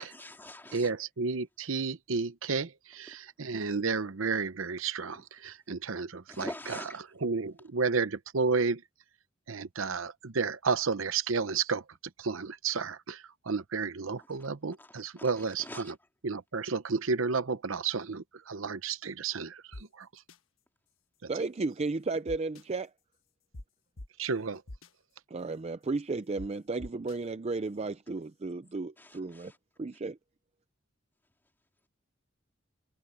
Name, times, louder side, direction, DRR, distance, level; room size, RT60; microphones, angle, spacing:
voice 1, 0.0-0.9 6.3-7.0 14.8-14.9 15.2-15.9 29.0-29.5, left 1 dB, 10° left, 2.9 m, -44 dB
voice 2, 0.7-6.9 7.2-8.8 9.5-11.8 12.2-15.9 16.2-20.2 21.2-21.3 24.2-24.6, right 4 dB, 75° right, 0.8 m, -32 dB
sound 1, 19.7-19.8 20.3-20.4 22.3-22.6 23.5-23.6 24.0-24.1 24.7-24.9 26.4-26.5 26.8-27.2, left 1 dB, 80° left, 1.3 m, -43 dB
voice 3, 21.3-22.9 25.3-29.5 29.8-30.2, right 3 dB, 30° right, 0.5 m, -34 dB
head